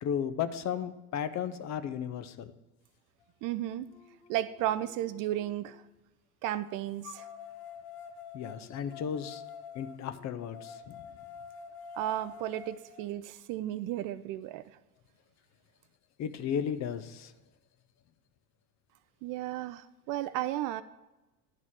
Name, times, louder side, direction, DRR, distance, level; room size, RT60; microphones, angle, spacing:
voice 1, 0.0-2.5 8.3-9.4 9.7-11.0 16.2-17.3, left 8 dB, 35° left, 12 dB, 0.6 m, -34 dB
sound 1, 3.2-3.3 3.9-5.8 7.0-13.0, left 7 dB, 75° left, 1.0 m, -48 dB
voice 2, 3.4-3.9 4.3-5.8 6.4-7.3 11.9-14.6 19.2-20.8, right 13 dB, 45° right, 14 dB, 0.4 m, -34 dB
11.0 x 4.0 x 7.4 m, 1.1 s
hypercardioid pair, 80°, 47 cm